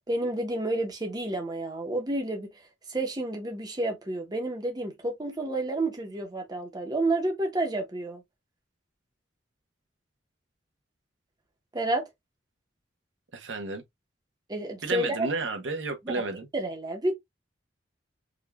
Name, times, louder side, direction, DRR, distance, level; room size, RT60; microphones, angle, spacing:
voice 1, 0.1-2.5 2.9-8.2 11.7-12.0 14.5-15.3 16.0-16.2 16.5-17.2, right 2 dB, 20° right, 0.9 m, -30 dB
voice 2, 13.3-13.8 14.8-16.5, right 3 dB, 85° right, 0.8 m, -32 dB
5.0 x 2.4 x 2.3 m
head